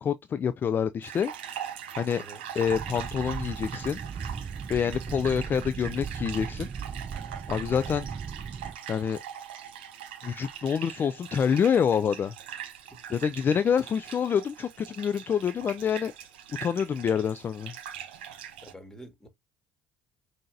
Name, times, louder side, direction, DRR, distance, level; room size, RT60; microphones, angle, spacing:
voice 1, 0.0-1.3 2.0-2.2 2.6-4.0 4.7-6.7 7.5-8.1 8.9-9.2 10.2-12.3 13.1-16.1 16.6-17.7, left 7 dB, 35° left, 0.3 m, -27 dB
sound 1, 1.0-18.7, right 9 dB, 80° right, 0.6 m, -42 dB
sound 2, 2.7-8.8, right 6 dB, 30° right, 0.4 m, -37 dB
voice 2, 18.6-19.3, right 1 dB, 10° left, 1.6 m, -47 dB
5.6 x 2.6 x 2.6 m
hypercardioid pair, 60°, 6 cm